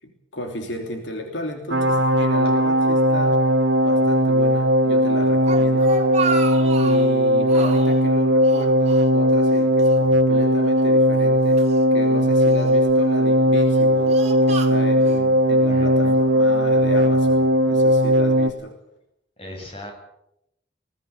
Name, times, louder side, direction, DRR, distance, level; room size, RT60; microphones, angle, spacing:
voice 1, 0.0-3.4 3.8-6.0 6.8-11.6 11.9-18.8, left 1 dB, 75° left, 3 dB, 3.1 m, -34 dB
sound 1, 1.7-18.5, equal, 70° right, 1.5 m, -18 dB
Speech, 5.2-7.1 7.5-8.0 8.4-9.5 9.8-9.9 10.8-11.8 12.5-12.9 13.5-15.2, right 4 dB, 35° right, 2.1 m, -31 dB
voice 2, 15.7-16.2 19.4-19.9, left 1 dB, 30° left, 2 dB, 7.5 m, -37 dB
20.5 x 18.5 x 8.2 m, 0.80 s
head